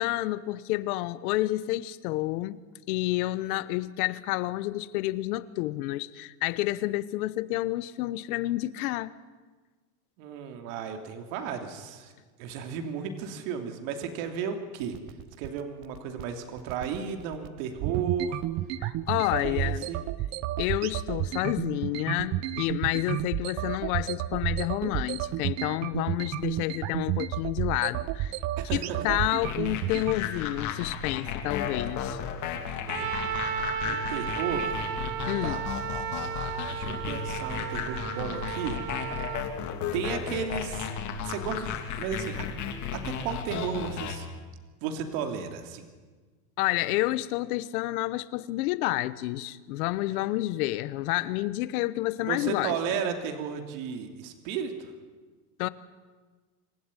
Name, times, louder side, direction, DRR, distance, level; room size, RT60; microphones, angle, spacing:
voice 1, 0.0-2.6 2.9-9.2 18.8-19.9 20.6-28.3 28.7-32.2 35.3-35.7 46.6-52.7 55.6-55.7, left 17 dB, 65° left, 1.2 m, -29 dB
voice 2, 10.2-12.1 12.4-15.0 15.4-18.4 19.4-20.0 28.6-29.2 32.9-33.1 33.8-34.8 35.4-35.6 36.7-38.8 39.9-40.9 41.2-41.7 42.0-42.5 42.9-44.3 44.8-45.9 52.2-54.9, right 7 dB, 60° right, 3.1 m, -34 dB
sound 1, 14.8-30.1, right 14 dB, 35° right, 0.7 m, -31 dB
sound 2, 29.4-44.2, left 7 dB, 40° left, 2.7 m, -34 dB
Trumpet, 32.9-39.5, right 9 dB, 90° right, 2.8 m, -34 dB
26.5 x 15.5 x 9.9 m
supercardioid pair, 160°, 46 cm